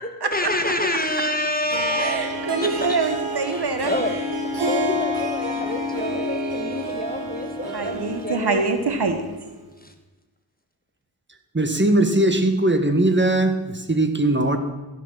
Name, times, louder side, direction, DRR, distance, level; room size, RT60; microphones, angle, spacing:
voice 1, 0.3-2.9 3.4-4.2 4.4-8.6 9.8-9.9, left 1 dB, 20° left, 6 dB, 1.8 m, -28 dB
Harp, 1.7-9.4, equal, 90° right, 2.2 m, -28 dB
voice 2, 2.0-3.9 7.7-9.2, right 4 dB, 55° right, 7 dB, 1.5 m, -24 dB
voice 3, 11.5-14.6, right 1 dB, 25° right, 7 dB, 1.8 m, -20 dB
15.5 x 6.5 x 5.6 m, 1.2 s
cardioid pair, 45°, 48 cm